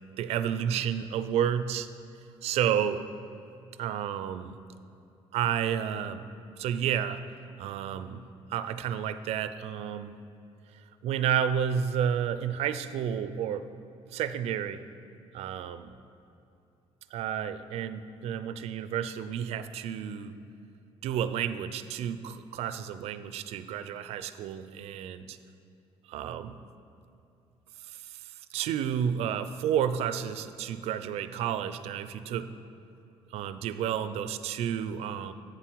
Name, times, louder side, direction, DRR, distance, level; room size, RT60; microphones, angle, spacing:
voice 1, 0.2-1.9 2.4-3.0 3.8-4.6 5.3-6.3 6.6-7.2 7.6-8.2 8.5-10.1 11.0-13.7 14.1-14.8 15.3-15.9 17.1-20.4 21.0-25.4 26.1-26.6 27.9-32.5 33.3-35.3, right 9 dB, 70° right, 12 dB, 0.4 m, -31 dB
8.8 x 7.5 x 4.6 m, 2.8 s
cardioid pair, 155°, 11 cm